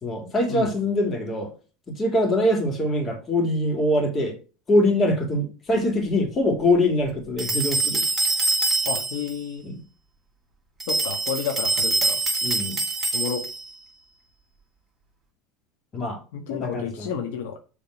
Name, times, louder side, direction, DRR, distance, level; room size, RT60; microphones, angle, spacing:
voice 1, 0.0-1.5 1.9-4.4 4.7-8.1 9.6-9.8 12.4-12.8 15.9-16.2 16.5-17.1, left 1 dB, 30° left, 2.4 m, -23 dB
sound 1, 7.4-9.4 10.8-13.7, right 3 dB, 15° right, 2.4 m, -24 dB
voice 2, 8.8-9.7 10.9-12.2 13.1-13.4 16.3-17.6, left 7 dB, 80° left, 1.3 m, -31 dB
7.5 x 3.6 x 6.4 m
supercardioid pair, 115°, 0 cm